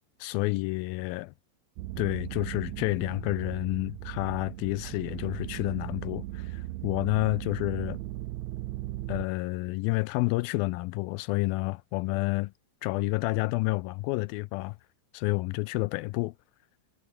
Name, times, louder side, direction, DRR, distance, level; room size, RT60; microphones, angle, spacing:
voice 1, 0.2-1.3 2.0-8.0 9.1-12.5 12.8-14.8 15.1-16.3, left 22 dB, 85° left, 2.3 m, -29 dB
sound 1, 1.8-9.3, right 17 dB, 80° right, 1.7 m, -38 dB
omnidirectional pair, 4.2 m